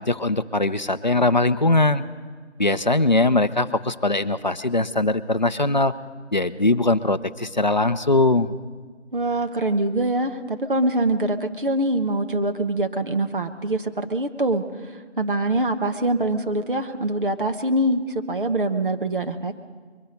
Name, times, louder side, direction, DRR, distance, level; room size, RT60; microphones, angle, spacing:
voice 1, 0.0-2.0 2.6-5.9 6.3-8.5, left 2 dB, 40° left, 12 dB, 0.5 m, -21 dB
voice 2, 9.1-14.6 15.2-19.6, right 1 dB, 45° right, 7 dB, 1.1 m, -24 dB
22.0 x 11.5 x 5.2 m, 1.5 s
figure-of-eight pair, 170°, 35 cm